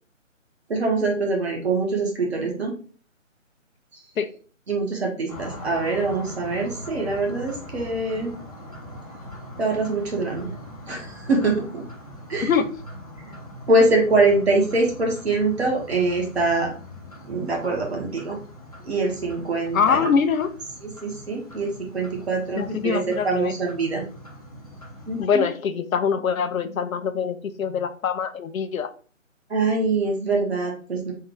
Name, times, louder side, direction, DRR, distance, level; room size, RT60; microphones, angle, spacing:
voice 1, 0.7-2.8 4.7-8.3 9.6-10.5 10.9-11.8 12.3-12.5 13.7-16.7 17.3-18.4 18.8-20.0 20.8-24.0 25.1-25.5 29.5-31.1, right 3 dB, 50° right, 1 dB, 1.2 m, -24 dB
sound 1, 5.3-25.2, left 1 dB, 30° left, 0.6 m, -41 dB
voice 2, 19.7-20.5 22.6-23.5 25.2-28.9, left 6 dB, 90° left, 10 dB, 0.6 m, -23 dB
3.7 x 2.3 x 4.4 m, 0.41 s
hypercardioid pair, 165°, 40 cm